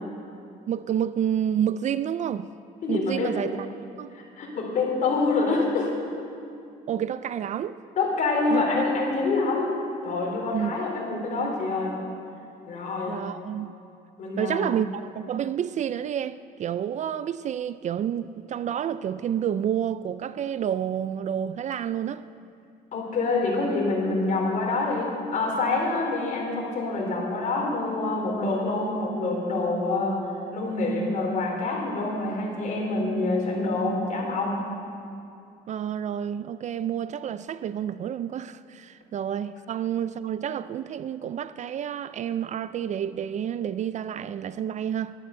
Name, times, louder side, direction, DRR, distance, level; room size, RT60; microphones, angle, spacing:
voice 1, 0.7-2.5 2.9-3.6 4.0-4.1 6.9-7.7 8.5-8.8 10.5-10.7 13.1-13.7 14.4-22.2 35.7-45.1, right 9 dB, 45° right, 0.4 m, -29 dB
voice 2, 2.8-3.4 4.1-5.9 8.0-9.7 10.0-11.9 12.7-13.2 14.2-14.7 22.9-30.2 30.5-34.6, left 3 dB, 50° left, 4.1 m, -26 dB
12.0 x 11.5 x 8.1 m
cardioid pair, 110°, 17 cm